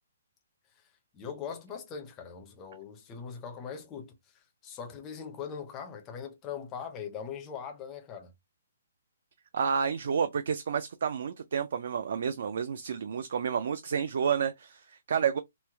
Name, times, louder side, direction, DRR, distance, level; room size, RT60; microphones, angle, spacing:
voice 1, 1.1-4.1 4.6-8.3, left 7 dB, 15° left, 0.5 m, -41 dB
voice 2, 9.5-15.4, right 7 dB, 50° right, 0.3 m, -30 dB
3.1 x 2.0 x 3.3 m
hypercardioid pair, 180°, 0 cm